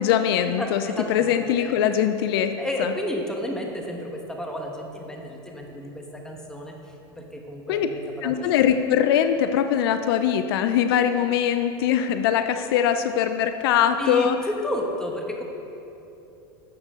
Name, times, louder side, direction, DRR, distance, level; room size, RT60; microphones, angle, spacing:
voice 1, 0.0-0.8 1.1-2.5 2.8-2.9 7.7-7.9 8.2-14.4, left 9 dB, 75° left, 9 dB, 0.5 m, -22 dB
voice 2, 1.0-1.8 2.6-6.7 7.1-8.4 14.0-14.3 14.6-15.4, left 1 dB, 5° left, 0 dB, 1.3 m, -32 dB
12.0 x 7.5 x 3.8 m, 2.9 s
supercardioid pair, 115°, 13 cm